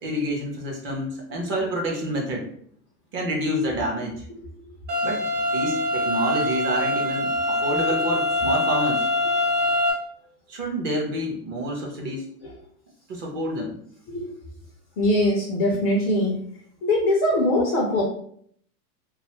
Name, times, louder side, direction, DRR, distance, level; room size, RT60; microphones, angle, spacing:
voice 1, 0.0-2.5 3.1-4.2 5.0-5.3 5.5-9.1 10.5-12.3 13.1-13.8, equal, 25° right, 0 dB, 0.5 m, -28 dB
sound 1, 4.9-9.9, left 1 dB, 80° right, 1.0 m, -24 dB
voice 2, 15.0-16.4 16.8-18.0, left 1 dB, 30° left, -2 dB, 0.3 m, -22 dB
2.5 x 2.3 x 2.9 m, 0.63 s
hypercardioid pair, 115°, 48 cm